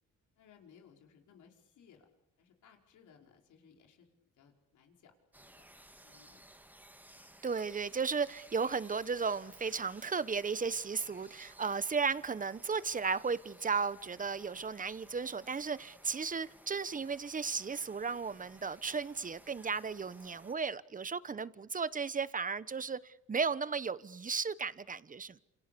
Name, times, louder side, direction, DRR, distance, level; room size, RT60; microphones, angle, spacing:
voice 1, 0.4-2.1 2.4-4.1 4.4-5.6 6.0-6.4, left 7 dB, 75° left, 5.3 m, -62 dB
sound 1, 5.3-20.5, right 1 dB, 5° right, 1.9 m, -58 dB
voice 2, 7.4-25.4, right 5 dB, 25° right, 1.1 m, -35 dB
28.5 x 28.0 x 7.0 m
cardioid pair, 90°, 30 cm